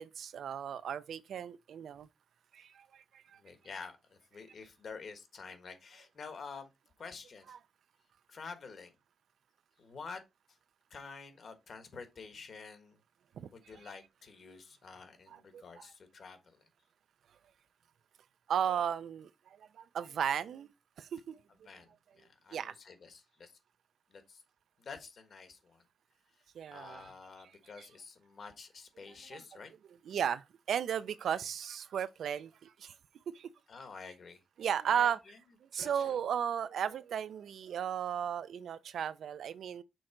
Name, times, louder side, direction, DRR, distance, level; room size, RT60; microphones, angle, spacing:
voice 1, 0.0-2.1 2.5-3.4 7.5-7.6 13.4-13.5 15.3-15.6 18.5-20.7 21.0-21.4 22.5-22.7 26.5-27.1 27.8-27.9 29.3-29.4 30.1-32.9 33.3-33.5 34.6-35.2 35.6-39.8, right 8 dB, 85° right, 0.5 m, -35 dB
voice 2, 3.4-6.7 7.0-7.6 8.3-8.9 9.8-10.2 10.9-13.0 13.5-16.6 21.6-23.5 24.1-24.4 24.8-25.8 26.7-29.7 33.7-34.4 34.9-35.4 35.7-36.2, left 5 dB, 50° left, 1.3 m, -49 dB
6.3 x 3.8 x 4.5 m
wide cardioid pair, 175°, 0 cm